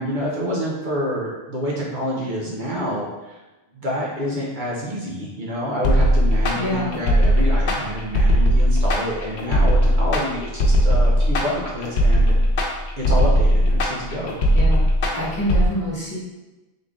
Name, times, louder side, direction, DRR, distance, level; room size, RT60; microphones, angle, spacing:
voice 1, 0.0-3.4 3.7-12.3 13.0-14.4, equal, 50° right, -5 dB, 1.0 m, -27 dB
sound 1, 5.8-15.7, equal, 90° left, 1.0 m, -18 dB
voice 2, 6.5-7.0 14.5-14.9 15.1-16.2, left 1 dB, 20° left, -8 dB, 1.1 m, -26 dB
3.8 x 3.3 x 3.5 m, 1.1 s
omnidirectional pair, 1.1 m